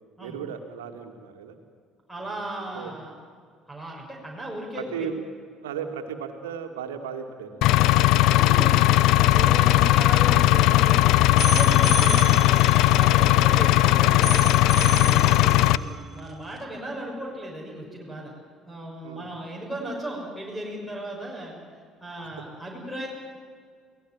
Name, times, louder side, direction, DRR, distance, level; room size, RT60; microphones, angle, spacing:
voice 1, 0.2-1.6 2.2-2.4 2.7-2.9 4.7-5.2 5.6-7.6 11.9-12.0 15.4-15.7 19.0-19.3, right 7 dB, 75° right, 5 dB, 2.3 m, -36 dB
voice 2, 2.1-3.2 3.7-5.1 8.3-11.1 11.4-14.3 14.7-18.3 18.7-21.5 22.0-23.1, right 1 dB, ahead, -1 dB, 6.4 m, -36 dB
Engine, 7.6-15.8, left 15 dB, 60° left, 0.6 m, -18 dB
sound 1, 11.4-16.6, right 3 dB, 35° right, 2.1 m, -33 dB
28.5 x 18.5 x 9.3 m, 2.1 s
figure-of-eight pair, 55°, 0 cm